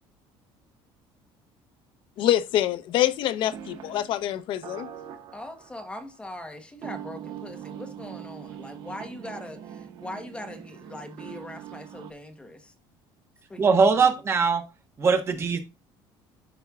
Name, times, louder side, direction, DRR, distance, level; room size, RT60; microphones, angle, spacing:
voice 1, 2.2-4.9, left 12 dB, 55° left, 0.7 m, -25 dB
sound 1, 3.1-3.2 3.5-6.1 6.8-12.1, right 10 dB, 55° right, 1.4 m, -42 dB
voice 2, 5.3-12.7 13.5-14.2, left 1 dB, 10° left, 1.1 m, -41 dB
voice 3, 13.6-14.6 15.0-15.6, right 5 dB, 25° right, 1.3 m, -21 dB
12.5 x 4.4 x 2.4 m
cardioid pair, 150°, 10 cm